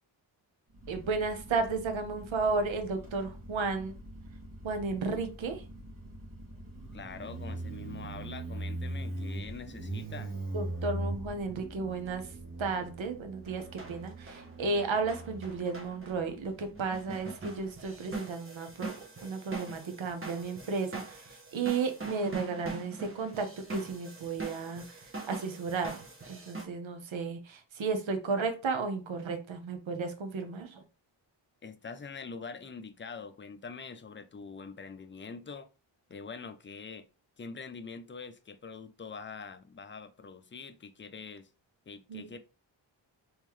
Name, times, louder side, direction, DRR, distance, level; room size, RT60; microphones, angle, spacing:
Motorcycle, 0.7-17.9, right 2 dB, 45° right, 1.5 m, -42 dB
voice 1, 0.9-3.9 4.6-5.6 10.5-12.3 12.6-19.0 19.2-26.0 26.3-30.8 42.1-42.3, right 4 dB, 80° right, 0.9 m, -33 dB
voice 2, 6.9-10.3 31.6-35.7 36.1-37.1 37.4-41.5 41.9-42.4, left 5 dB, 25° left, 0.5 m, -44 dB
sound 1, 13.4-26.6, right 3 dB, 25° right, 1.0 m, -44 dB
3.6 x 3.1 x 3.1 m
wide cardioid pair, 85°, 46 cm